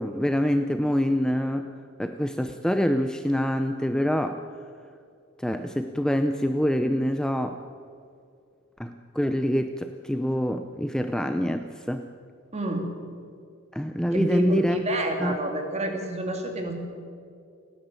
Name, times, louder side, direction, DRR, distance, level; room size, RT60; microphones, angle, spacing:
voice 1, 0.0-1.7 2.0-4.4 5.4-7.6 8.8-12.1 13.7-14.8 15.2-15.4, equal, 5° left, 7 dB, 0.6 m, -25 dB
voice 2, 12.5-12.9 14.1-16.7, right 1 dB, 35° right, 3 dB, 2.8 m, -28 dB
29.5 x 10.5 x 8.9 m, 2.4 s
head